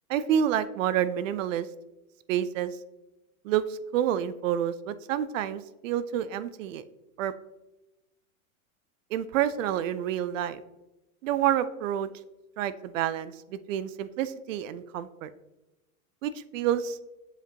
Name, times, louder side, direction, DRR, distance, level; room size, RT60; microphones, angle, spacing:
voice 1, 0.1-1.7 2.3-2.8 3.4-6.8 7.2-7.3 9.1-10.6 11.2-12.1 12.6-15.3 16.2-17.0, right 10 dB, 65° right, 15 dB, 0.6 m, -28 dB
7.6 x 5.2 x 2.8 m, 1.0 s
hypercardioid pair, 135°, 43 cm